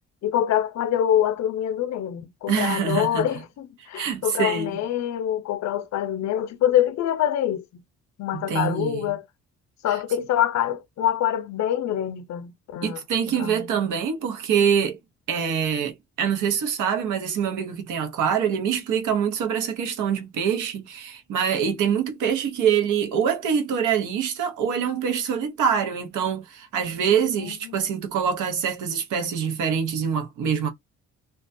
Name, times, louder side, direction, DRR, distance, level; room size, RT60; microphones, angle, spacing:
voice 1, 0.2-7.6 8.2-9.2 9.8-13.0 13.4-14.0 27.4-27.8, left 11 dB, 65° left, 0.5 m, -25 dB
voice 2, 2.5-3.3 3.9-4.8 8.3-9.1 9.9-10.0 12.8-15.0 15.3-30.7, right 7 dB, 80° right, 0.8 m, -25 dB
2.3 x 2.2 x 2.5 m
cardioid pair, 90°, 30 cm